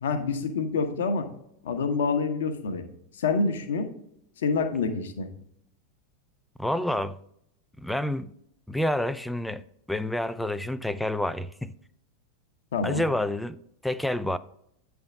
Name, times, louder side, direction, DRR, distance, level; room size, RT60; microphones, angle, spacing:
voice 1, 0.0-1.3 1.6-2.8 3.1-3.9 4.4-5.3 12.7-13.0, left 4 dB, 60° left, 0.8 m, -27 dB
voice 2, 6.6-7.2 7.8-8.3 8.7-9.6 9.9-11.7 12.8-14.4, left 1 dB, ahead, 0.3 m, -28 dB
8.7 x 3.5 x 5.0 m
figure-of-eight pair, 90°, 0 cm